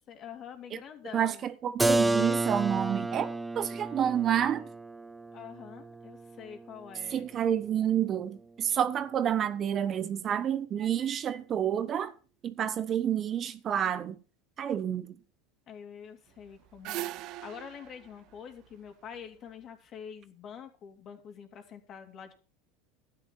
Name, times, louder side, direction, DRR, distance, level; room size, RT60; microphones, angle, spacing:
voice 1, 0.0-1.5 5.3-7.3 15.7-22.3, left 8 dB, 40° left, 3.2 m, -46 dB
voice 2, 1.1-4.6 7.1-12.1 12.4-14.1 14.6-15.1, right 9 dB, 40° right, 1.0 m, -29 dB
Keyboard (musical), 1.8-7.4, right 2 dB, 10° right, 0.9 m, -31 dB
sound 1, 16.4-19.5, right 15 dB, 55° right, 0.6 m, -41 dB
12.0 x 10.5 x 4.3 m
supercardioid pair, 105°, 0 cm